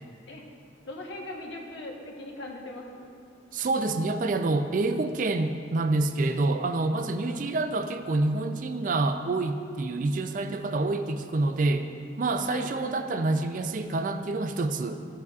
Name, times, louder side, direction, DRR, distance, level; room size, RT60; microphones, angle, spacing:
voice 1, 0.9-2.9 7.0-7.5 9.9-10.3 12.5-12.7, left 2 dB, 70° left, -1 dB, 1.1 m, -40 dB
voice 2, 3.5-11.9 12.2-15.0, right 2 dB, 45° right, 8 dB, 0.4 m, -27 dB
13.0 x 8.0 x 2.4 m, 2.4 s
head